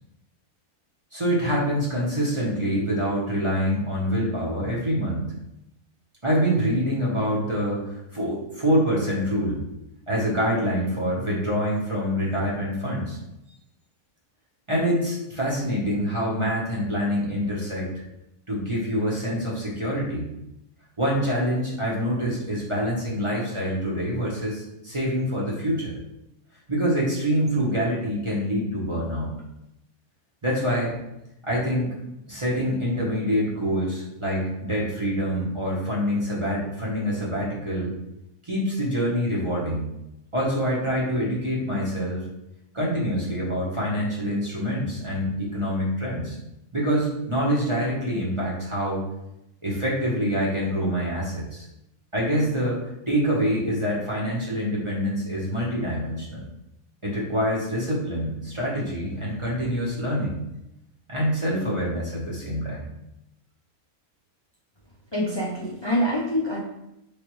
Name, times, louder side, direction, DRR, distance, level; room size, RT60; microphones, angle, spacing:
voice 1, 1.1-5.3 6.2-9.6 10.1-13.2 14.7-17.9 18.5-20.3 21.0-25.9 26.7-29.3 30.4-30.9 31.4-31.9 32.3-37.9 38.4-39.9 40.3-42.2 42.7-46.4 46.7-49.0 49.6-51.7 52.1-52.8 53.1-56.4 57.0-60.4 61.1-62.8, equal, 25° right, -6 dB, 1.0 m, -25 dB
voice 2, 65.1-66.6, equal, 25° left, -7 dB, 0.6 m, -25 dB
4.8 x 3.4 x 3.1 m, 0.86 s
omnidirectional pair, 1.5 m